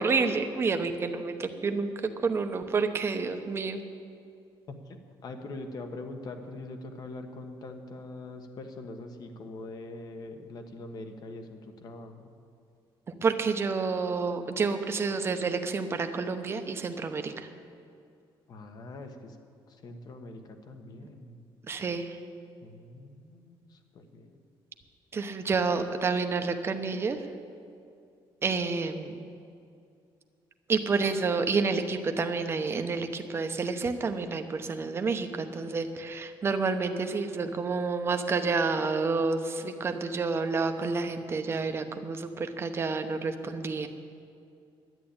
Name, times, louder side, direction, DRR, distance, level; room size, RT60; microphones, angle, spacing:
voice 1, 0.0-1.9 2.2-3.8 13.2-17.5 21.7-22.1 25.1-27.2 28.4-29.2 30.7-43.9, right 4 dB, 25° right, 7 dB, 0.8 m, -29 dB
voice 2, 4.7-12.3 18.5-19.4 19.7-21.4 22.6-24.4, left 2 dB, 45° left, 6 dB, 1.3 m, -43 dB
11.0 x 10.0 x 8.7 m, 2.4 s
cardioid pair, 145°, 9 cm